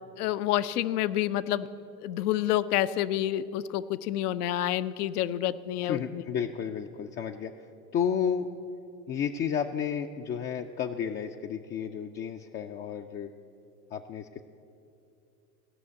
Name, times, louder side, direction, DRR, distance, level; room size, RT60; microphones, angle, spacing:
voice 1, 0.2-1.7 2.0-6.2, left 12 dB, 70° left, 15 dB, 0.6 m, -28 dB
voice 2, 5.8-7.5 7.9-8.5 9.1-13.3 13.9-14.4, left 8 dB, 25° left, 4 dB, 0.4 m, -32 dB
15.5 x 6.2 x 8.5 m, 2.7 s
hypercardioid pair, 75°, 47 cm